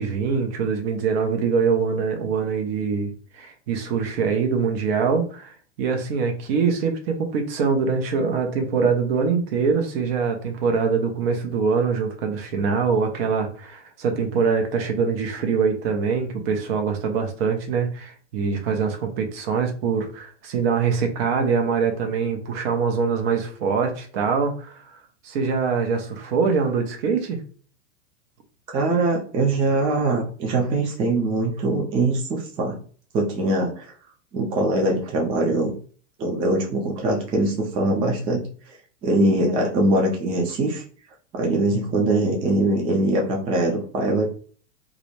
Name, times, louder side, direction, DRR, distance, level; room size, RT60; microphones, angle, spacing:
voice 1, 0.0-25.0 25.2-27.4, right 5 dB, 50° right, 4 dB, 0.8 m, -24 dB
voice 2, 28.7-32.8 33.1-33.9 34.3-35.7 36.2-38.4 39.0-40.8 41.3-44.3, right 2 dB, 15° right, 0 dB, 0.3 m, -22 dB
2.4 x 2.1 x 3.1 m, 0.43 s
hypercardioid pair, 95°, 37 cm